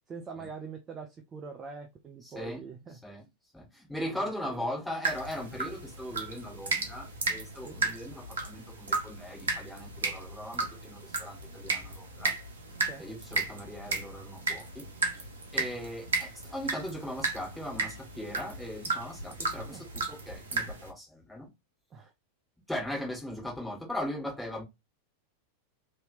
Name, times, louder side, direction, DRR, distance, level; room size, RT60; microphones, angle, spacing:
voice 1, 0.1-3.0 4.1-4.7 7.6-7.8 12.9-13.1 15.6-15.7 19.6-19.8 21.9-22.1, right 5 dB, 25° right, 0.5 m, -44 dB
voice 2, 2.2-2.6 3.0-3.2 3.5-12.4 13.0-14.8 15.5-21.5 22.7-24.6, left 1 dB, 5° left, 1.6 m, -39 dB
sound 1, 5.0-20.9, right 3 dB, 70° right, 0.9 m, -34 dB
3.3 x 2.8 x 2.6 m
figure-of-eight pair, 90°, 0 cm